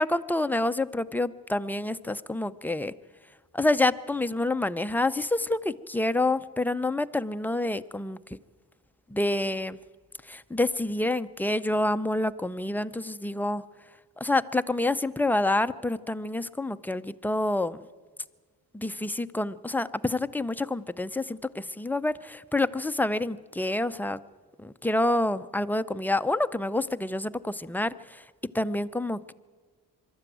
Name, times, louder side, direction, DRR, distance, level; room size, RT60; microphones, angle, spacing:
voice 1, 0.0-2.9 3.5-8.2 9.1-9.8 10.3-13.6 14.2-17.8 18.7-24.2 24.6-27.9 28.5-29.3, left 2 dB, 5° left, 11 dB, 0.5 m, -27 dB
23.5 x 13.0 x 9.1 m, 1.5 s
cardioid pair, 95°, 40 cm